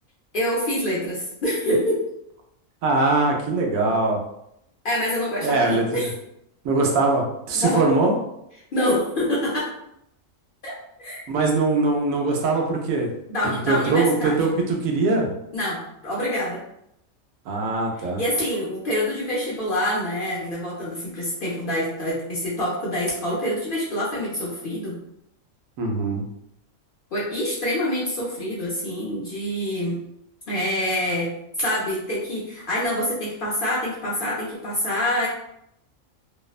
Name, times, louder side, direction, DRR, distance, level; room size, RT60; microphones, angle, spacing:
voice 1, 0.3-2.1 4.8-6.1 7.5-7.8 8.7-9.7 10.6-11.2 13.3-14.4 15.5-16.6 18.0-25.0 27.1-30.0 30.5-31.3 31.6-35.3, left 1 dB, 55° left, -6 dB, 0.6 m, -26 dB
voice 2, 2.8-4.2 5.4-6.0 6.6-8.1 11.3-13.1 13.7-15.3 17.5-18.2 25.8-26.2, right 3 dB, 85° right, 1 dB, 1.0 m, -22 dB
2.7 x 2.0 x 2.3 m, 0.78 s
omnidirectional pair, 1.4 m